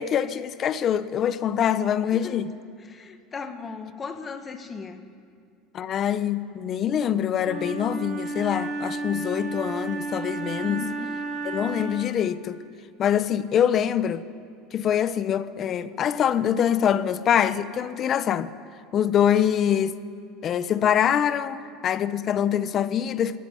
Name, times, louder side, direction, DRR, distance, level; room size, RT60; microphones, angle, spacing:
voice 1, 0.0-2.5 5.7-10.8 11.4-12.6 13.0-14.2 14.7-18.5 18.9-20.0 20.4-23.4, left 9 dB, 40° left, 1.0 m, -24 dB
voice 2, 2.1-2.4 2.8-5.0 10.6-11.2, left 5 dB, 25° left, 2.0 m, -37 dB
Wind instrument woodwind instrument, 7.4-12.3, right 3 dB, 45° right, 4.0 m, -32 dB
23.0 x 14.5 x 9.7 m
supercardioid pair, 110°, 0 cm